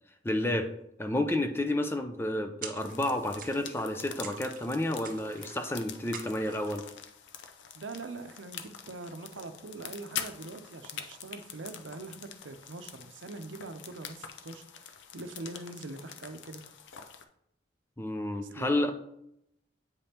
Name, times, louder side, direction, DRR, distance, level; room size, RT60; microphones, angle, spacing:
voice 1, 0.2-0.7 1.0-6.8 18.0-18.9, left 1 dB, 10° left, 6 dB, 0.5 m, -30 dB
sound 1, 2.6-3.1 3.4-3.9 4.2-4.7 5.0-5.7 6.1-6.8, right 6 dB, 45° right, 0.7 m, -45 dB
sound 2, 2.8-17.2, left 8 dB, 80° left, 0.6 m, -45 dB
voice 2, 7.7-16.6 18.5-18.9, right 3 dB, 90° right, 9 dB, 0.6 m, -43 dB
8.2 x 5.2 x 2.9 m, 0.77 s
head